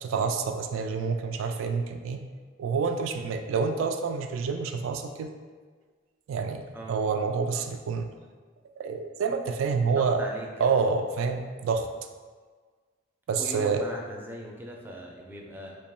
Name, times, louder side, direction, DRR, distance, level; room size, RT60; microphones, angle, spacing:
voice 1, 0.0-2.2 2.6-5.3 6.3-8.1 8.8-10.2 10.6-11.9 13.3-13.8, right 5 dB, 90° right, 6 dB, 0.3 m, -28 dB
voice 2, 9.6-10.9 13.3-15.7, right 1 dB, 10° right, -1 dB, 0.3 m, -40 dB
2.9 x 2.2 x 4.1 m, 1.5 s
head